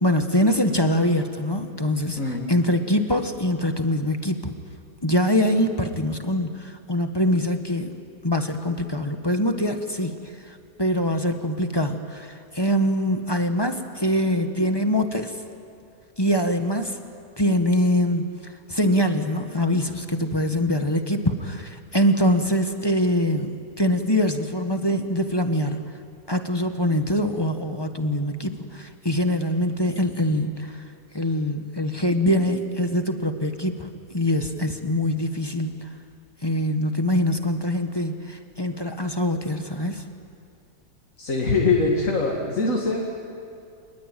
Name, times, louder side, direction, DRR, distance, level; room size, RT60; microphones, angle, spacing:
voice 1, 0.0-2.2 2.5-4.5 5.0-10.1 10.4-15.3 16.2-17.0 17.4-25.8 26.3-30.8 31.1-35.9 36.4-40.0, left 1 dB, 15° left, 6 dB, 1.2 m, -24 dB
voice 2, 2.2-2.5 41.2-43.0, left 3 dB, 50° left, -1 dB, 2.7 m, -23 dB
26.5 x 20.5 x 9.1 m, 2.4 s
omnidirectional pair, 1.8 m